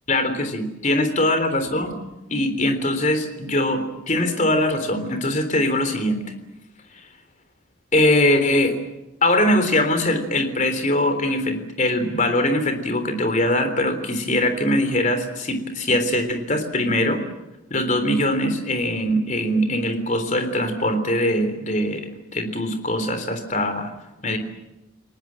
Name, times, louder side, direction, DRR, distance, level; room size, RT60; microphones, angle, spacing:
voice 1, 0.1-2.0 2.3-6.2 7.9-8.7 9.2-17.2 17.7-23.9 24.2-24.4, left 1 dB, 35° left, 8 dB, 3.6 m, -22 dB
29.5 x 19.0 x 7.6 m, 0.97 s
head